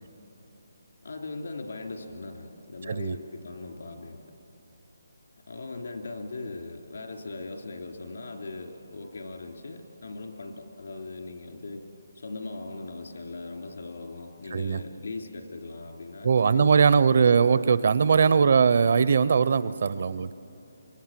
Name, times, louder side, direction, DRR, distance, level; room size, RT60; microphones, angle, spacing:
voice 1, 1.0-4.2 5.5-11.8 12.1-17.3, left 3 dB, 70° left, 3 dB, 3.1 m, -39 dB
voice 2, 16.2-20.3, right 6 dB, 45° right, 17 dB, 0.5 m, -20 dB
26.0 x 21.0 x 7.4 m, 2.9 s
hypercardioid pair, 175°, 0 cm